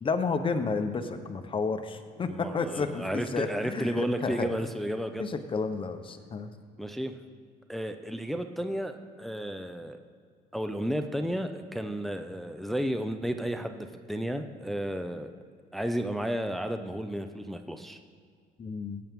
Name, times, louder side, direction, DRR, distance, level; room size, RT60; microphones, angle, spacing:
voice 1, 0.0-4.5 5.2-6.5 18.6-19.0, left 4 dB, 30° left, 8 dB, 1.0 m, -31 dB
voice 2, 2.3-5.3 6.8-7.2 7.7-10.0 10.5-15.3 15.7-18.0, equal, ahead, 7 dB, 0.6 m, -32 dB
16.5 x 8.7 x 3.7 m, 2.1 s
cardioid pair, 110°, 17 cm